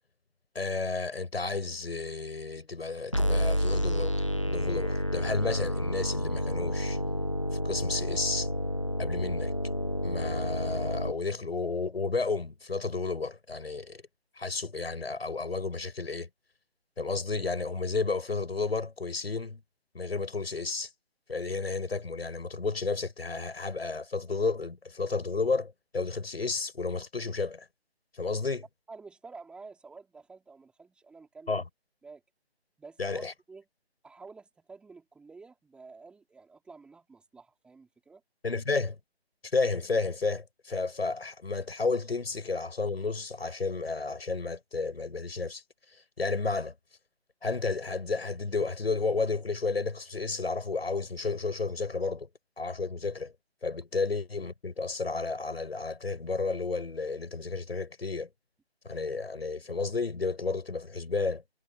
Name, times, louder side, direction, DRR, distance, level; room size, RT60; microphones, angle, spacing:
voice 1, 0.5-7.0 7.6-8.5 9.0-9.5 10.0-14.0 14.4-16.3 17.0-19.6 19.9-20.9 21.3-27.7 28.1-28.6 31.5-31.6 33.0-33.3 38.4-39.0 39.5-45.6 46.2-46.7 47.4-52.3 52.6-53.3 53.6-58.3 58.8-61.4, left 4 dB, 65° left, 7.7 m, -32 dB
sound 1, 3.1-11.1, equal, 30° left, 0.4 m, -30 dB
voice 2, 28.9-31.6 32.0-32.2 32.8-33.6 34.0-38.2, right 4 dB, 5° right, 3.7 m, -50 dB
figure-of-eight pair, 160°, 33 cm